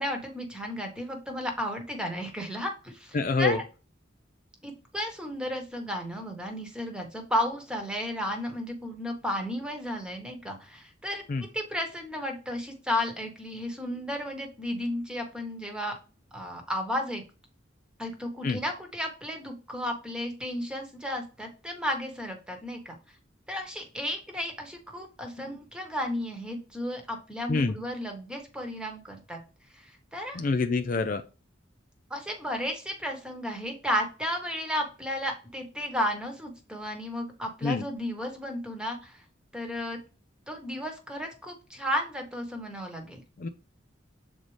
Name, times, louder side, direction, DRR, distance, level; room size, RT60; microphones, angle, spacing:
voice 1, 0.0-3.6 4.6-11.2 11.5-15.9 16.3-17.2 18.0-22.9 23.5-29.4 29.7-30.4 32.1-39.2 39.5-40.0 40.5-43.2, equal, 5° right, 3 dB, 1.2 m, -33 dB
voice 2, 3.1-3.6 11.3-11.4 18.4-18.6 25.4-25.5 27.5-27.8 30.3-31.2 37.6-37.9 43.4-43.5, left 4 dB, 45° left, 8 dB, 0.4 m, -26 dB
7.4 x 4.0 x 3.2 m, 0.34 s
head